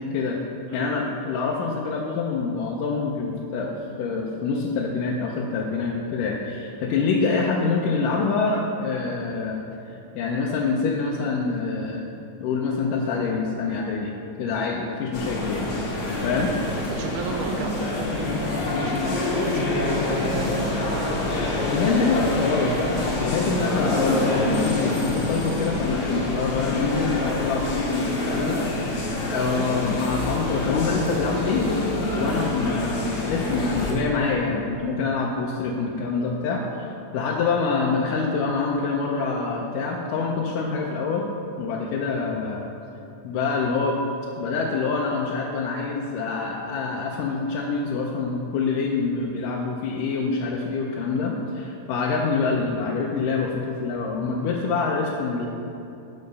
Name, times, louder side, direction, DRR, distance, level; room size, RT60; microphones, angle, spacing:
voice 1, 0.7-3.7 4.0-9.6 10.1-12.0 12.4-14.1 14.4-15.7 16.2-16.5 19.1-19.2 21.6-31.7 32.1-36.6 37.1-41.3 41.6-42.7 43.2-44.0 44.4-55.5, left 4 dB, 85° left, -2 dB, 2.3 m, -26 dB
sound 1, 15.1-33.9, left 2 dB, 50° left, 2.1 m, -26 dB
voice 2, 16.9-21.4 29.4-29.7, right 4 dB, 80° right, 3 dB, 2.3 m, -35 dB
12.0 x 5.8 x 5.4 m, 2.8 s
omnidirectional pair, 3.7 m